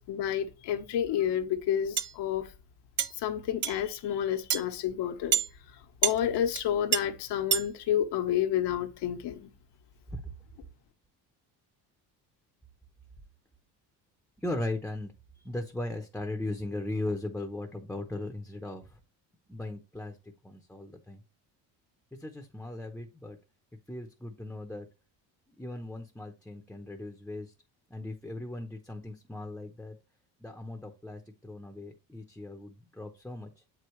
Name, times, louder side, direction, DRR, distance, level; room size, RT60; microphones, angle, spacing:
voice 1, 0.0-2.5 3.2-5.4 6.0-9.5, left 10 dB, 80° left, 1.2 m, -30 dB
sound 1, 2.0-2.1 3.0-3.1 3.6-3.8 4.5-4.6 5.3-5.5 6.0-6.2 6.5-6.6 6.9-7.0 7.5-7.7, right 9 dB, 30° right, 0.4 m, -26 dB
voice 2, 14.4-19.0 19.5-21.2 22.2-23.4 23.9-24.9 25.5-27.5 27.9-30.0 30.4-33.5, left 2 dB, 5° left, 0.8 m, -38 dB
7.7 x 4.7 x 3.1 m
cardioid pair, 125°, 40 cm